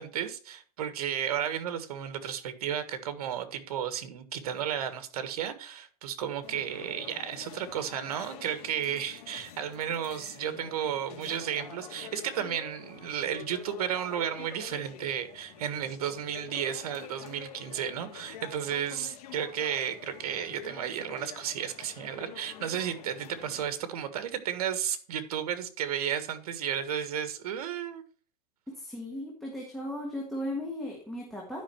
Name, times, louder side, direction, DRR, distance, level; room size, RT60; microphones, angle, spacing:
voice 1, 0.0-28.0, right 9 dB, 75° right, 1.6 m, -33 dB
sound 1, 6.4-23.7, left 7 dB, 70° left, 2.2 m, -47 dB
voice 2, 28.8-31.6, left 1 dB, ahead, 1.6 m, -36 dB
11.5 x 5.5 x 4.4 m
supercardioid pair, 155°, 20 cm